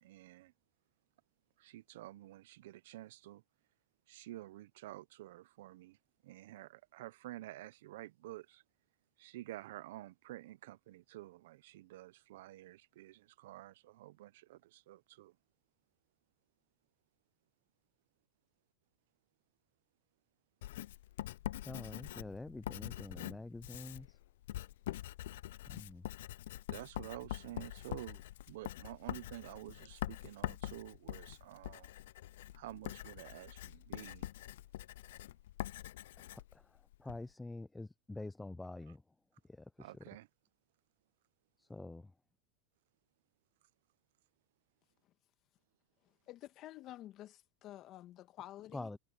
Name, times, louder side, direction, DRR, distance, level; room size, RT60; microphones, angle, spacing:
voice 1, 0.0-0.5 1.6-3.4 4.1-6.0 6.2-8.6 9.2-15.3 26.7-28.2 28.5-31.9 32.5-34.3 39.8-40.3, right 16 dB, 75° right, 0.8 m, -50 dB
Writing, 20.6-37.2, left 14 dB, 80° left, 0.5 m, -45 dB
voice 2, 21.6-24.1 25.7-26.0 36.3-36.4 37.0-39.0 41.7-42.1 48.7-49.0, left 2 dB, 5° left, 0.5 m, -46 dB
voice 3, 46.3-48.9, left 14 dB, 40° left, 1.6 m, -50 dB
supercardioid pair, 130°, 0 cm